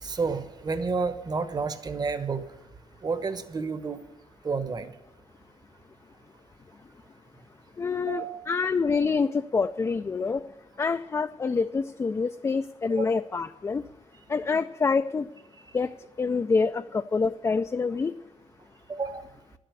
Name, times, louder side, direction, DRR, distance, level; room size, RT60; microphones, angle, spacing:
voice 1, 0.0-2.4 3.0-4.0 4.4-4.9 8.1-8.4 12.9-13.1 18.9-19.2, right 4 dB, 35° right, 10 dB, 1.0 m, -30 dB
voice 2, 7.8-10.5 10.8-13.8 14.3-15.3 15.7-18.1, left 4 dB, 25° left, 10 dB, 0.3 m, -26 dB
11.5 x 7.6 x 9.1 m, 0.97 s
cardioid pair, 120°, 12 cm